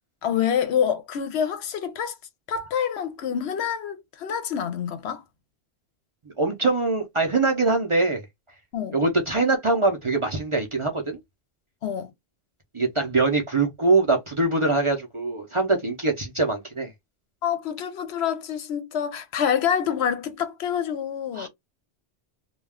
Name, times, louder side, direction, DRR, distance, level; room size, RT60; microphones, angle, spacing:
voice 1, 0.2-2.1 2.5-5.2 8.7-9.0 11.8-12.1 17.4-21.5, left 8 dB, 75° left, 0.8 m, -27 dB
voice 2, 6.4-8.2 8.9-11.2 12.7-16.9 21.3-21.5, right 3 dB, 35° right, 0.5 m, -23 dB
2.3 x 2.3 x 3.3 m
omnidirectional pair, 1.1 m